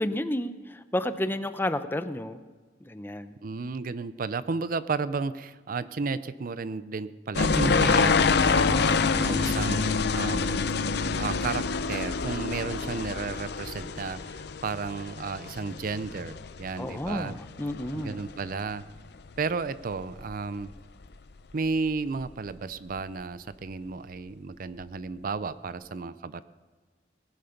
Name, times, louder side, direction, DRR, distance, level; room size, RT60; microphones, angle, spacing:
voice 1, 0.0-2.4 2.8-3.3 8.7-9.7 16.8-18.2, left 1 dB, 10° left, 11 dB, 0.6 m, -32 dB
voice 2, 3.4-10.6 11.1-17.3 17.9-18.8 19.4-20.7 21.5-26.4, right 4 dB, 50° right, 15 dB, 0.5 m, -33 dB
sound 1, 7.3-18.7 19.0-19.5 19.9-20.7 21.0-21.1 21.9-22.0 22.2-22.3, left 4 dB, 60° left, 0.6 m, -27 dB
19.0 x 10.5 x 5.8 m, 1.4 s
head